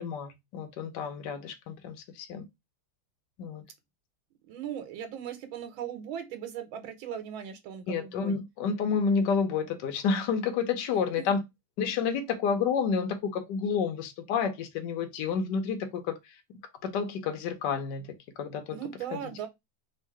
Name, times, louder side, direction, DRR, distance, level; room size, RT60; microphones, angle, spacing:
voice 1, 0.0-2.5 3.4-3.6 7.9-11.4 11.8-16.2 16.8-18.1 18.4-18.8, left 6 dB, 65° left, 1.3 m, -29 dB
voice 2, 4.5-8.4 10.9-11.4 18.7-19.5, right 9 dB, 90° right, 1.6 m, -38 dB
3.6 x 2.5 x 4.6 m
omnidirectional pair, 2.2 m